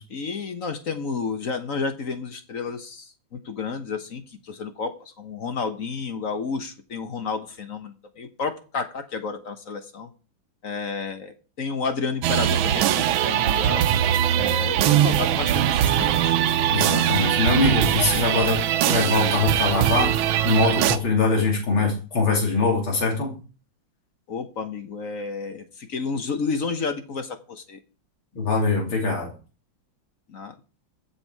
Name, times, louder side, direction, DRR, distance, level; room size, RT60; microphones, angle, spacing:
voice 1, 0.1-10.1 10.6-13.9 14.3-16.3 24.3-27.8 30.3-30.5, left 5 dB, 45° left, 8 dB, 1.4 m, -31 dB
sound 1, 12.2-21.0, right 11 dB, 90° right, 1.5 m, -21 dB
voice 2, 16.7-18.6 18.9-23.4 28.4-29.3, left 3 dB, 90° left, 0 dB, 3.9 m, -23 dB
15.0 x 7.3 x 4.8 m, 0.36 s
omnidirectional pair, 2.2 m